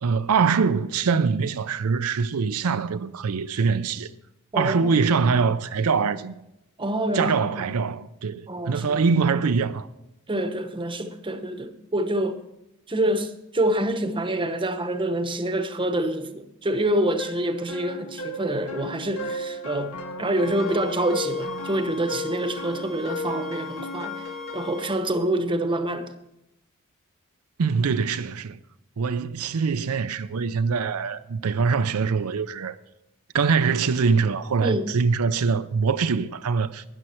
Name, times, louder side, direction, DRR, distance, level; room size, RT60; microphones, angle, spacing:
voice 1, 0.0-4.1 4.5-6.3 7.1-9.9 27.6-28.6 29.0-32.8 33.3-36.8, right 5 dB, 80° right, 0.5 m, -23 dB
voice 2, 4.5-5.0 6.8-7.6 8.5-9.0 10.3-12.4 12.9-26.1 34.6-34.9, right 1 dB, 25° right, 0.9 m, -26 dB
sound 1, 17.2-24.9, left 2 dB, 85° left, 1.6 m, -35 dB
sound 2, 20.4-25.0, left 4 dB, ahead, 1.0 m, -42 dB
13.0 x 9.9 x 4.4 m
head